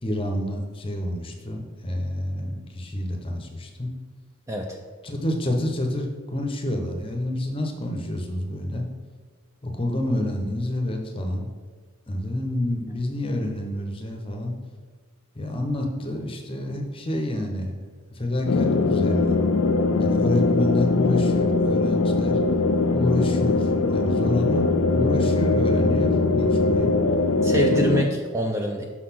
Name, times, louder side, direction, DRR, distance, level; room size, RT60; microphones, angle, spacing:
voice 1, 0.0-3.9 5.0-8.9 9.6-11.5 12.1-14.5 15.3-17.8 18.1-19.4 20.0-22.4 22.9-26.9, left 1 dB, 25° left, 2 dB, 0.8 m, -28 dB
voice 2, 4.5-4.8 27.4-28.9, right 1 dB, 15° right, 2 dB, 0.4 m, -25 dB
sound 1, 18.5-28.0, left 3 dB, 65° left, 0.4 m, -21 dB
6.0 x 4.0 x 5.9 m, 1.5 s
head